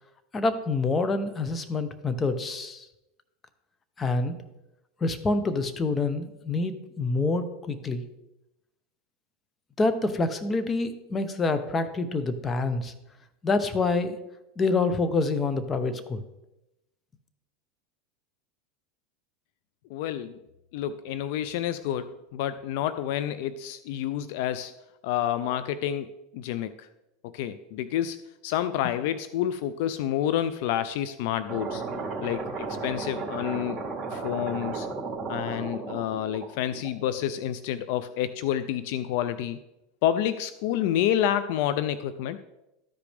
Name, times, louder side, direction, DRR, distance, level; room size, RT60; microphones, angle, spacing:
voice 1, 0.3-2.9 4.0-4.4 5.0-8.0 9.8-12.9 13.4-14.2 14.6-16.2, left 3 dB, 25° left, 10 dB, 0.8 m, -27 dB
voice 2, 19.9-20.4 20.7-24.7 25.0-26.9 27.2-28.2 28.4-31.8 32.2-33.8 34.1-34.9 35.3-39.6 40.0-42.4, left 11 dB, 70° left, 13 dB, 0.4 m, -29 dB
sound 1, 31.5-37.3, right 4 dB, 20° right, 2.6 m, -34 dB
13.0 x 5.0 x 3.4 m, 0.92 s
supercardioid pair, 110°, 0 cm